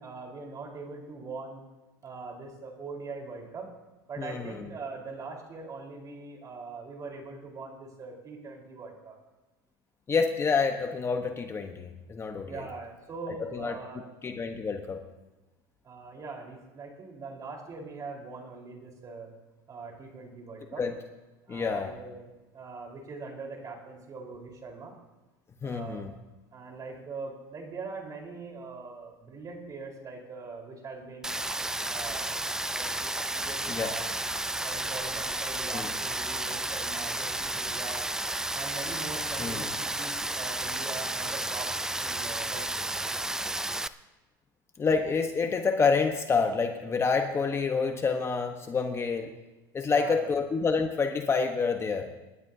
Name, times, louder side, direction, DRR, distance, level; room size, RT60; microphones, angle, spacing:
voice 1, 0.0-1.6 2.0-3.7 4.1-9.2 12.4-14.1 15.8-19.3 19.7-20.8 21.5-22.3 22.5-24.9 25.6-26.1 26.5-31.4 31.8-32.4 32.6-34.0 34.6-38.0 38.5-41.7 42.0-43.0 49.9-50.4, right 4 dB, 30° right, 1 dB, 4.2 m, -42 dB
voice 2, 4.2-4.6 10.1-12.6 13.4-13.8 14.2-15.0 20.8-20.9 21.5-21.9 25.6-26.1 33.7-33.9 35.7-35.9 39.4-39.6 44.8-49.3 49.7-52.1, left 5 dB, 25° left, 5 dB, 1.1 m, -28 dB
Rain, 31.2-43.9, right 1 dB, 5° right, 0.5 m, -32 dB
27.5 x 12.0 x 2.8 m, 1.1 s
supercardioid pair, 110°, 11 cm